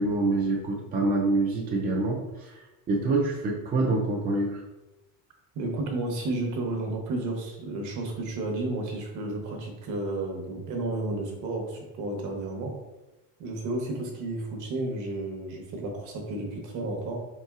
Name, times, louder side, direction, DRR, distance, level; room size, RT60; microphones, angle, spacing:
voice 1, 0.0-4.6, right 2 dB, 25° right, -2 dB, 0.4 m, -26 dB
voice 2, 5.5-12.7 13.4-17.2, right 2 dB, 50° right, 1 dB, 0.9 m, -32 dB
4.2 x 3.7 x 2.4 m, 1.0 s
cardioid pair, 175°, 37 cm